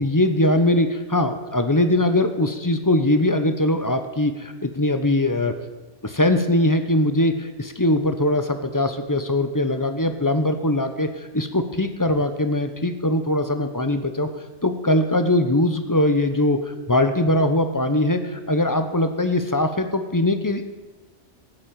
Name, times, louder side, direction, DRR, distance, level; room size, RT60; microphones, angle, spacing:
voice 1, 0.0-5.5 6.0-11.1 11.3-14.3 14.6-16.6 16.9-20.6, left 1 dB, 20° left, 8 dB, 1.0 m, -21 dB
14.0 x 7.6 x 8.7 m, 1.2 s
omnidirectional pair, 1.1 m